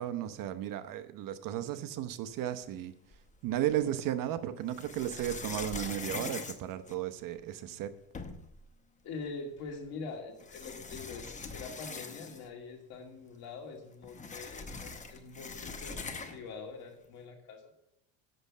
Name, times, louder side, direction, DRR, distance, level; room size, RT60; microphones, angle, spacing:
voice 1, 0.0-7.9, right 12 dB, 50° right, 11 dB, 0.8 m, -35 dB
sound 1, 3.1-3.9 4.7-7.4 7.8-7.9 8.1-8.6 9.7-9.8 10.4-12.6 12.9-13.0 13.3-16.5, left 4 dB, 15° left, 0.8 m, -42 dB
voice 2, 9.0-17.7, left 4 dB, 60° left, 2 dB, 2.4 m, -44 dB
7.9 x 6.6 x 7.2 m, 0.83 s
supercardioid pair, 110°, 42 cm